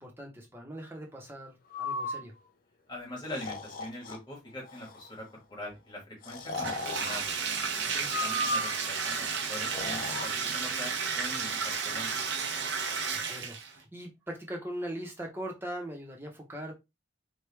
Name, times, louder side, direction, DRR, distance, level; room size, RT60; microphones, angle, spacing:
voice 1, 0.0-2.3 7.9-8.1 13.3-16.7, right 1 dB, 10° right, 0.9 m, -40 dB
Breathing, 1.7-2.2 3.2-4.2 4.7-5.1 6.2-7.2 8.1-8.9 9.6-10.3, left 2 dB, 45° left, 0.5 m, -35 dB
voice 2, 2.9-7.3 8.2-12.2, left 1 dB, 20° left, 1.5 m, -42 dB
Bathtub (filling or washing), 6.5-13.8, right 5 dB, 60° right, 0.8 m, -32 dB
4.6 x 2.4 x 3.3 m
head